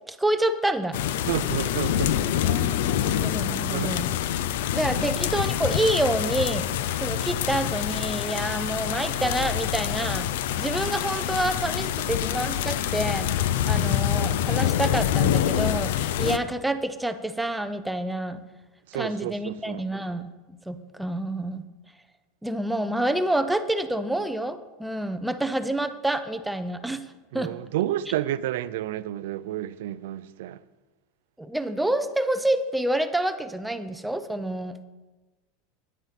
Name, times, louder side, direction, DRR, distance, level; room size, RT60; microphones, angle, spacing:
voice 1, 0.1-1.0 2.4-4.1 4.7-6.7 7.0-10.3 10.6-13.3 13.6-18.4 18.9-20.3 20.7-21.6 22.4-27.0 27.3-27.5 31.4-34.8, right 1 dB, 5° right, 0.3 m, -28 dB
sound 1, 0.9-16.4, left 11 dB, 70° left, 0.4 m, -26 dB
voice 2, 1.3-2.2 3.7-3.9 4.9-5.1 13.8-14.0 18.9-19.8 27.3-30.6, right 13 dB, 70° right, 0.4 m, -30 dB
10.0 x 8.9 x 4.1 m
supercardioid pair, 175°, 0 cm